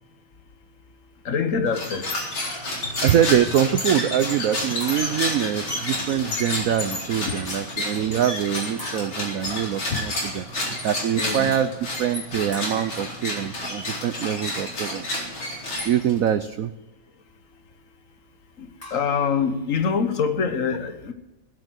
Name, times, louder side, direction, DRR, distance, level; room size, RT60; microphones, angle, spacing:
voice 1, 1.2-2.1 7.2-7.4 9.9-10.0 11.2-11.5 18.6-21.1, left 6 dB, 45° left, 1.4 m, -25 dB
sound 1, 1.7-16.3, left 1 dB, 75° left, 4.9 m, -30 dB
voice 2, 3.0-11.7 12.0-15.1 15.8-16.7, right 10 dB, 80° right, 0.7 m, -24 dB
sound 2, 4.8-6.1 8.8-9.5 12.5-14.1 18.8-20.0, left 1 dB, 10° left, 1.7 m, -44 dB
19.0 x 8.7 x 8.1 m
omnidirectional pair, 2.2 m